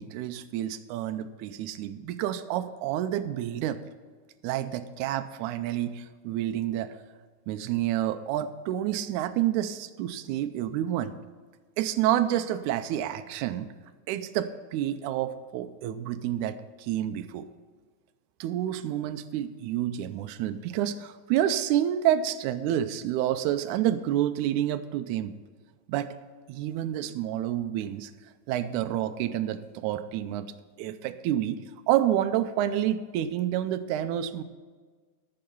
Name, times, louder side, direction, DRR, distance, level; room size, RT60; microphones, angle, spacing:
voice 1, 0.0-3.8 4.4-6.9 7.5-11.1 11.8-13.7 14.1-17.5 18.4-25.4 25.9-26.1 26.5-28.1 28.5-30.5 30.8-31.6 31.9-34.4, right 11 dB, 90° right, 10 dB, 1.7 m, -29 dB
14.5 x 6.6 x 5.5 m, 1.5 s
omnidirectional pair, 4.1 m